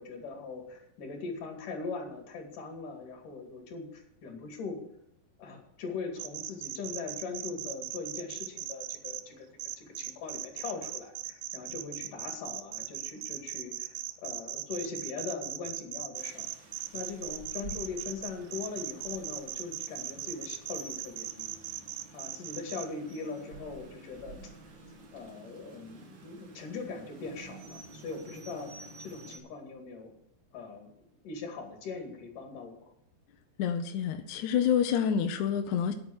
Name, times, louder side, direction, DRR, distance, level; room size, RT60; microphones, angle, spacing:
voice 1, 0.0-4.8 5.4-16.5 16.9-21.5 22.1-24.5 25.1-30.1 30.5-30.9 31.2-32.9, left 4 dB, 60° left, 2 dB, 3.7 m, -41 dB
sound 1, 6.2-9.2 9.6-22.9, right 14 dB, 80° right, 2.1 m, -38 dB
Rain, 16.1-29.4, right 2 dB, 55° right, 1.3 m, -50 dB
voice 2, 33.6-35.9, left 8 dB, 75° left, 7 dB, 1.8 m, -28 dB
9.4 x 8.2 x 8.7 m, 0.77 s
omnidirectional pair, 4.4 m